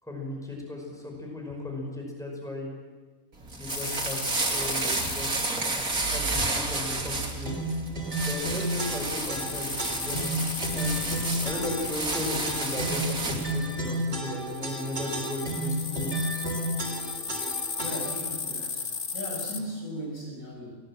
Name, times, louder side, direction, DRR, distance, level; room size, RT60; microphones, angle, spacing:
voice 1, 0.0-2.7 3.5-5.4 6.1-7.9 8.3-10.4 10.7-11.1 11.4-16.2, left 2 dB, ahead, 0 dB, 5.7 m, -36 dB
sound 1, 3.3-13.5, right 2 dB, 80° right, 3.3 m, -31 dB
sound 2, 3.7-7.0 8.2-19.6, left 5 dB, 50° left, 1.6 m, -36 dB
sound 3, 7.4-18.3, right 1 dB, 50° right, 4.2 m, -32 dB
voice 2, 17.8-20.8, equal, 70° left, -2 dB, 6.9 m, -37 dB
23.0 x 18.0 x 7.7 m, 1.3 s
omnidirectional pair, 1.5 m